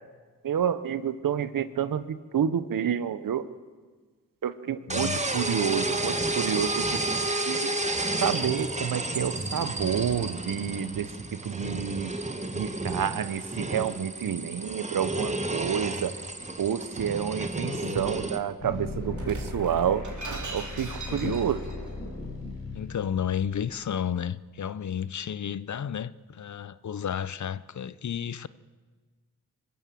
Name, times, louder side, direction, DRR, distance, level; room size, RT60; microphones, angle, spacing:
voice 1, 0.4-3.5 4.4-7.0 7.5-7.7 8.2-11.1 11.4-12.1 12.5-16.1 16.6-20.1 20.5-21.6, right 8 dB, 80° right, 1.0 m, -29 dB
voice 2, 4.9-5.2 17.6-18.0 21.1-21.5 22.7-28.5, left 8 dB, 60° left, 0.7 m, -32 dB
sound 1, 4.9-18.4, right 2 dB, 20° right, 1.7 m, -31 dB
Shatter, 16.4-17.2 18.0-18.3 19.1-21.8, right 3 dB, 60° right, 3.9 m, -39 dB
sound 2, 18.6-23.6, left 3 dB, 80° left, 5.5 m, -38 dB
24.5 x 14.5 x 7.6 m
cardioid pair, 45°, 33 cm